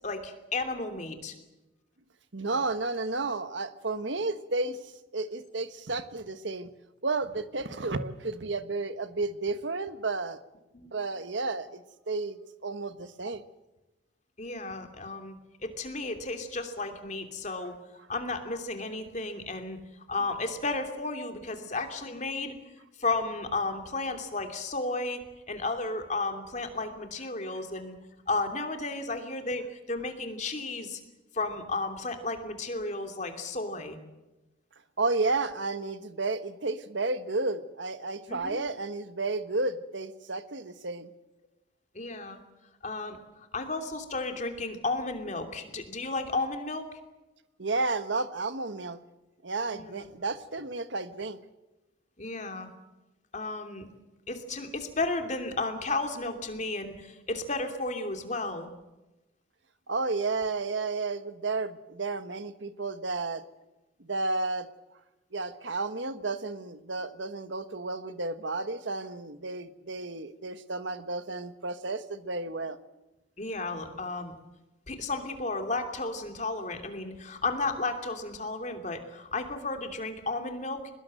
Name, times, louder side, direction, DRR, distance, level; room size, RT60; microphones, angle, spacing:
voice 1, 0.0-1.4 10.7-10.9 14.4-15.3 15.6-17.8 18.1-19.8 20.1-22.5 23.0-27.9 28.3-31.0 31.3-34.0 38.3-38.6 41.9-42.4 42.8-43.2 43.5-46.9 49.7-50.1 52.2-52.7 53.3-53.9 54.3-58.7 73.4-74.3 74.9-80.8, left 3 dB, 40° left, 6 dB, 2.9 m, -33 dB
voice 2, 2.3-4.8 5.1-6.7 7.0-10.4 10.9-12.4 12.6-13.4 35.0-41.1 47.6-49.0 49.4-51.4 59.9-63.4 64.0-64.7 65.3-72.8, right 3 dB, 70° right, 11 dB, 1.4 m, -32 dB
23.0 x 21.0 x 7.8 m, 1.0 s
head